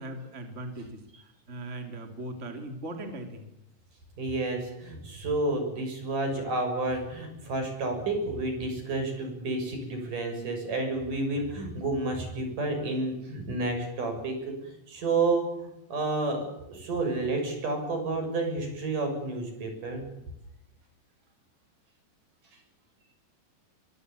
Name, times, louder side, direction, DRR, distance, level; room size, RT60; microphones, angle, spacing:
voice 1, 0.0-3.5, right 1 dB, 20° right, 4 dB, 3.4 m, -39 dB
voice 2, 4.2-20.0, right 2 dB, 70° right, 5 dB, 8.3 m, -30 dB
25.5 x 23.5 x 7.2 m, 0.87 s
omnidirectional pair, 3.9 m